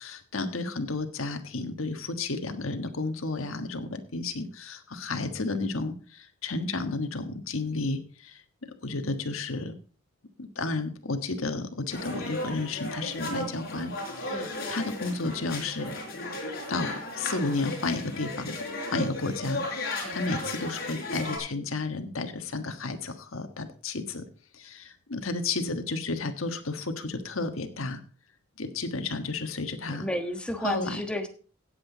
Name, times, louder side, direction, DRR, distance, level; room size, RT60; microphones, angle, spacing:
voice 1, 0.0-9.8 10.4-16.0 16.7-18.6 18.9-24.3 24.5-28.0 28.6-30.1 30.6-31.0, left 3 dB, 90° left, 7 dB, 1.5 m, -32 dB
sound 1, 11.9-21.4, left 2 dB, 50° left, 4.4 m, -35 dB
voice 2, 29.9-31.3, left 1 dB, 5° left, 5 dB, 1.3 m, -32 dB
16.5 x 8.0 x 4.0 m, 0.40 s
head